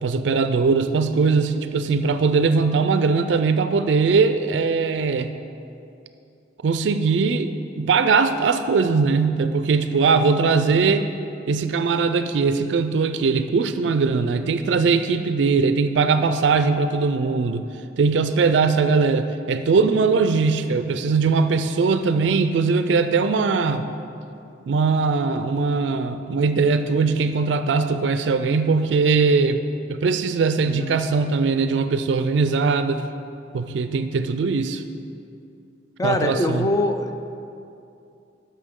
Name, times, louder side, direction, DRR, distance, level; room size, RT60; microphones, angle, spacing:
voice 1, 0.0-5.4 6.6-11.1 11.5-17.6 18.0-23.9 24.7-33.0 33.5-34.8 36.0-36.7, right 4 dB, 75° right, 10 dB, 0.4 m, -20 dB
voice 2, 30.6-31.0 36.0-37.1, left 1 dB, 20° left, 6 dB, 0.4 m, -23 dB
13.0 x 5.6 x 3.7 m, 2.6 s
head